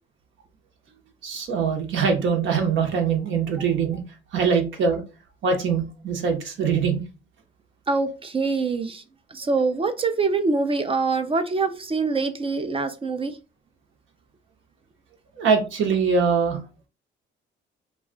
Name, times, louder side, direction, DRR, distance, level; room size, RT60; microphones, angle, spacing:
voice 1, 1.2-4.0 4.3-5.0 5.4-7.0 15.4-16.6, right 5 dB, 75° right, 0.9 m, -23 dB
voice 2, 7.9-9.0 9.3-13.4, right 4 dB, 30° right, 0.4 m, -24 dB
2.3 x 2.3 x 3.6 m
cardioid pair, 90°, 20 cm